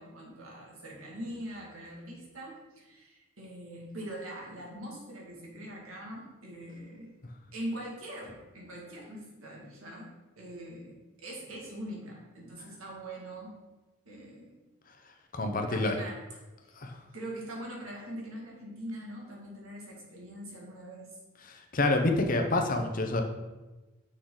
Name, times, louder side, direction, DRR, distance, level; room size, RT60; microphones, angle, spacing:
voice 1, 0.0-7.1 7.5-13.6 14.1-14.6 15.7-16.4 17.1-21.2, right 1 dB, 80° right, -3 dB, 2.1 m, -42 dB
voice 2, 15.3-15.9 16.8-16.9 21.7-23.2, left 2 dB, 40° left, 4 dB, 0.8 m, -27 dB
6.4 x 6.4 x 3.9 m, 1.1 s
head